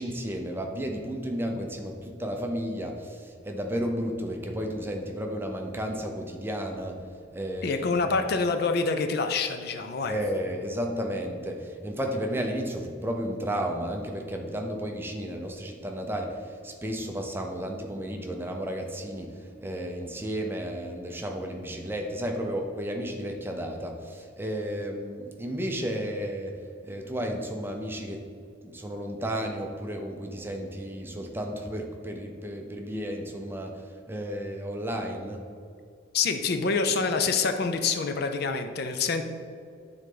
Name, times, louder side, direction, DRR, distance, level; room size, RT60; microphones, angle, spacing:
voice 1, 0.0-7.0 7.3-7.9 10.1-19.3 19.6-26.5 26.8-28.2 28.6-33.8 34.1-35.4, equal, 10° right, 2 dB, 0.6 m, -33 dB
voice 2, 7.6-10.2 36.1-39.2, left 4 dB, 50° left, 7 dB, 0.4 m, -26 dB
9.3 x 3.9 x 3.8 m, 2.4 s
head